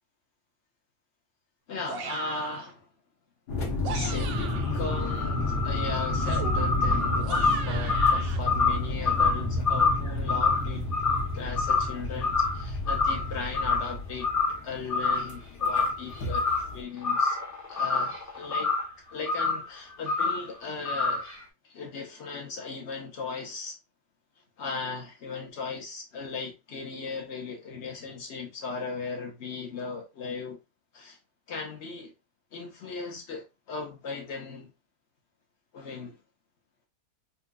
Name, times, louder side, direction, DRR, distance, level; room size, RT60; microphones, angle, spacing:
voice 1, 1.7-2.9 3.8-10.9 11.3-14.3 14.6-17.4 17.7-18.7 19.1-21.3 21.6-23.8 24.6-30.6 30.9-31.2 31.5-32.1 32.5-34.7 35.7-36.2, left 4 dB, 50° left, 1.2 m, -37 dB
sound 1, 1.9-2.7 3.6-4.8 6.2-8.4, right 7 dB, 70° right, 0.5 m, -39 dB
sound 2, 3.5-16.8, left 2 dB, 70° left, 1.6 m, -31 dB
sound 3, 4.3-12.0 12.2-12.6 12.9-13.9 14.2-14.6 14.9-15.3 15.6-16.7 17.0-18.9 19.3-19.6 20.1-20.4 20.8-21.3, left 4 dB, 20° left, 0.4 m, -27 dB
4.3 x 2.5 x 2.3 m
omnidirectional pair, 1.6 m